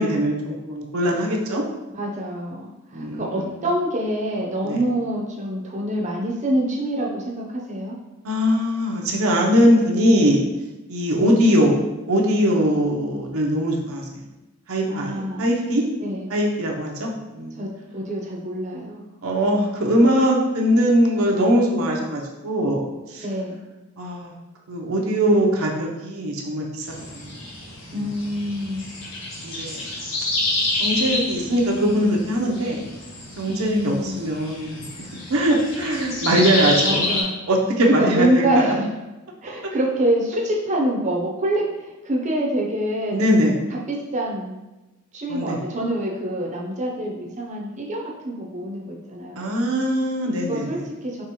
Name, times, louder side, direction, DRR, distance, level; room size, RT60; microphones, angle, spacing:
voice 1, 0.0-1.6 2.9-3.6 4.6-4.8 8.2-10.4 10.9-14.2 14.7-15.8 16.3-17.5 19.2-23.2 24.0-24.4 24.7-26.9 27.1-27.3 29.4-29.8 30.8-32.8 33.4-34.8 35.1-38.7 39.6-39.7 43.1-43.6 45.3-45.6 49.3-50.8, equal, 85° right, -1 dB, 0.7 m, -21 dB
voice 2, 1.9-8.0 11.2-11.4 14.9-15.5 16.0-16.3 17.5-19.0 23.2-23.6 27.9-28.9 33.5-34.2 36.8-37.3 37.9-38.9 39.4-44.5 45.1-49.6 50.5-51.2, right 1 dB, 35° right, -2 dB, 0.7 m, -26 dB
sound 1, 26.9-37.2, left 2 dB, 65° left, 1.1 m, -28 dB
4.8 x 3.1 x 2.9 m, 1.0 s
head